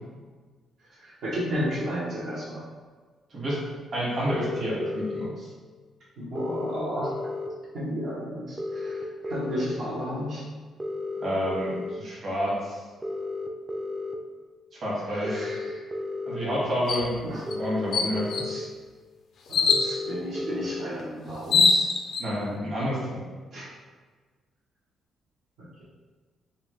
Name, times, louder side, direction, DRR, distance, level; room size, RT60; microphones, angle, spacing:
voice 1, 0.8-2.6 6.2-7.1 7.7-10.4 15.1-15.9 17.2-17.4 18.0-18.7 19.5-21.9 23.5-23.7, equal, 75° right, -10 dB, 1.0 m, -33 dB
voice 2, 3.9-5.5 11.2-12.8 14.7-15.4 16.3-18.4 22.2-23.2, equal, 50° right, -6 dB, 1.4 m, -29 dB
sound 1, 4.3-5.3 6.4-7.5 8.6-9.7 10.8-11.9 13.0-14.2 15.2-16.4 17.5-18.6 19.7-20.8, left 2 dB, 15° right, 0.4 m, -33 dB
sound 2, 16.9-17.1 17.5-17.6 17.9-18.5 19.5-19.9 21.0-21.1 21.4-22.2, left 4 dB, 65° left, 0.4 m, -22 dB
3.7 x 2.2 x 3.1 m, 1.4 s
cardioid pair, 90°, 0 cm